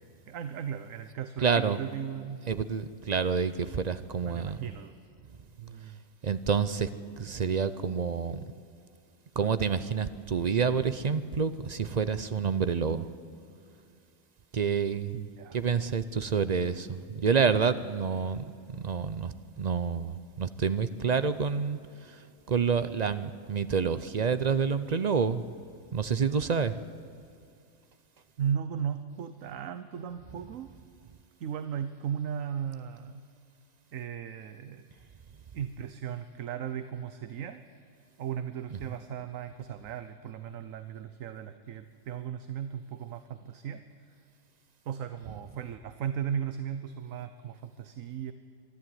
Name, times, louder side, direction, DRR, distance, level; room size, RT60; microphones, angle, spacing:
voice 1, 0.3-2.4 4.2-4.9 5.6-6.0 15.1-15.6 28.4-30.7 31.4-33.3 33.9-34.9 35.5-37.6 38.2-44.2 44.9-48.3, right 8 dB, 70° right, 11 dB, 1.2 m, -36 dB
voice 2, 1.4-1.8 2.5-4.6 6.2-6.9 7.2-8.4 9.4-13.1 14.5-15.1 15.5-22.2 22.5-25.4 25.9-26.8, right 6 dB, 50° right, 13 dB, 0.5 m, -28 dB
24.5 x 12.0 x 9.4 m, 2.4 s
omnidirectional pair, 1.5 m